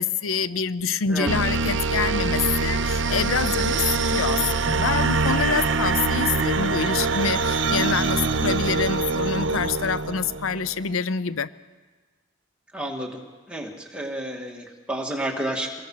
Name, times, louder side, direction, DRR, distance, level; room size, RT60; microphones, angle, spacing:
voice 1, 0.0-11.5, left 6 dB, 90° left, 16 dB, 0.6 m, -26 dB
sound 1, 1.3-10.7, right 3 dB, 60° right, 0.9 m, -24 dB
voice 2, 12.7-13.2 13.5-15.8, right 1 dB, 5° right, 0 dB, 2.3 m, -30 dB
25.5 x 20.5 x 5.8 m, 1.4 s
head